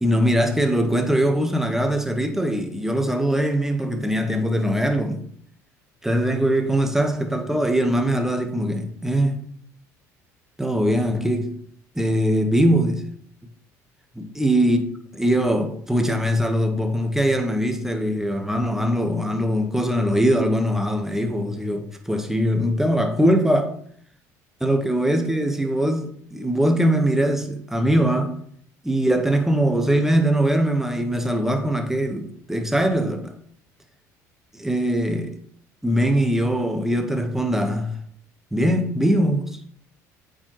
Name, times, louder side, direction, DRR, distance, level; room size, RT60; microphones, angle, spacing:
voice 1, 0.0-5.2 6.0-9.4 10.6-11.6 11.9-13.0 14.1-14.8 15.1-23.8 24.6-28.4 28.8-33.3 34.5-35.4 35.8-38.0 38.5-39.6, equal, 5° right, 1.3 m, -21 dB
8.3 x 4.9 x 3.1 m
hypercardioid pair, 65°, 9 cm